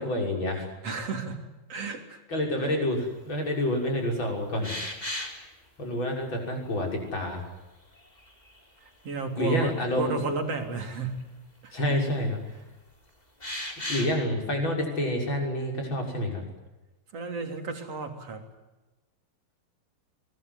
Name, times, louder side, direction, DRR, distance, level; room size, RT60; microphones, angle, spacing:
voice 1, 0.0-0.7 2.3-4.7 5.8-7.4 9.4-10.2 11.7-12.5 13.8-16.4, left 1 dB, 30° left, 2 dB, 7.0 m, -28 dB
voice 2, 0.8-1.4 1.7-2.2 2.6-2.7 9.0-11.3 11.6-11.8 17.1-18.4, right 4 dB, 40° right, 5 dB, 4.0 m, -32 dB
sound 1, 4.6-5.4 7.0-7.1 8.0-8.8 9.2-9.3 11.2-11.3 13.4-14.1, left 1 dB, 10° left, 3.7 m, -35 dB
24.0 x 21.0 x 9.6 m, 1.1 s
omnidirectional pair, 4.5 m